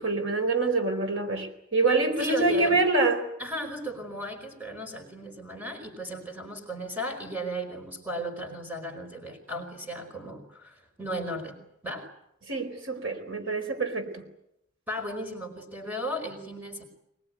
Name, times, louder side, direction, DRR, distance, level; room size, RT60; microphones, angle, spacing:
voice 1, 0.0-3.3 12.5-14.2, right 3 dB, 75° right, 4.3 m, -26 dB
voice 2, 2.2-2.8 3.4-12.1 14.9-16.8, right 1 dB, 10° right, 4.8 m, -35 dB
23.5 x 21.5 x 9.5 m
head